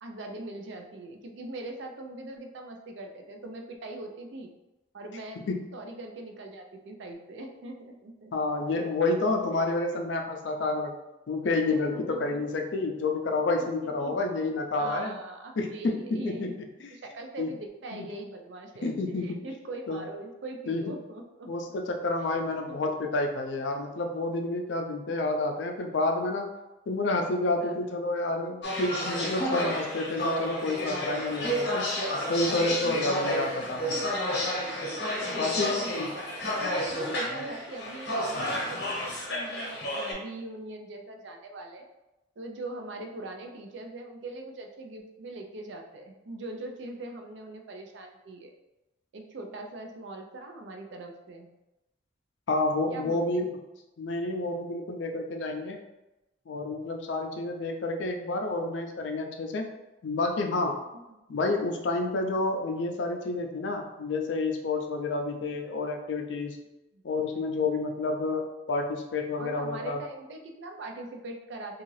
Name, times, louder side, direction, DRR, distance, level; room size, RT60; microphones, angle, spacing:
voice 1, 0.0-4.5 4.9-5.4 5.7-8.3 9.9-10.2 11.7-12.4 13.6-14.2 14.8-16.5 16.9-18.9 19.2-21.5 22.2-22.4 22.7-22.8 27.4-27.9 32.7-33.2 35.1-41.9 42.4-48.5 49.1-51.5 52.9-53.4 60.9-61.2 66.9-67.0 69.4-71.8, right 2 dB, 75° right, 3 dB, 0.4 m, -41 dB
voice 2, 8.3-10.9 11.3-15.2 15.6-16.5 16.8-16.9 17.4-17.5 17.9-18.1 18.8-19.4 19.9-20.0 20.7-20.9 21.5-26.5 26.9-31.9 32.3-33.8 35.4-36.1 52.5-53.5 54.0-55.8 56.5-59.7 60.0-60.7 61.3-66.6 67.0-70.0, left 2 dB, 80° left, 3 dB, 0.4 m, -29 dB
sound 1, 28.6-40.1, equal, 60° left, 0.8 m, -31 dB
2.7 x 2.4 x 3.1 m, 0.98 s
head